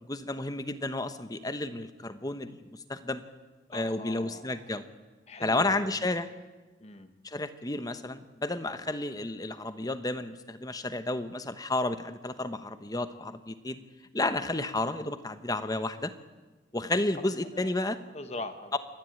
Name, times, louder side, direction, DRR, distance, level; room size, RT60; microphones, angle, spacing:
voice 1, 0.0-3.2 3.7-4.8 5.4-6.3 7.2-13.8 14.1-16.1 16.7-18.0 18.7-18.8, left 2 dB, 20° left, 11 dB, 1.0 m, -32 dB
voice 2, 3.7-4.6 5.3-6.1 6.8-7.1 17.5-18.8, left 2 dB, 35° left, 8 dB, 1.5 m, -42 dB
27.0 x 11.5 x 9.0 m, 1.2 s
head